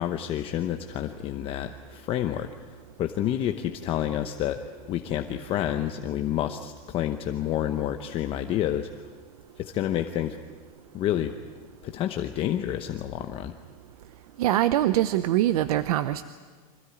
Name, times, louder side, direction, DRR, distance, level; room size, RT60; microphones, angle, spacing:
voice 1, 0.0-2.5 3.0-4.6 4.9-8.9 9.6-10.4 10.9-11.3 11.8-13.6, left 11 dB, 30° left, 7 dB, 0.9 m, -29 dB
voice 2, 14.4-16.2, right 13 dB, 75° right, 12 dB, 0.9 m, -23 dB
25.5 x 16.5 x 9.8 m, 1.5 s
supercardioid pair, 155°, 19 cm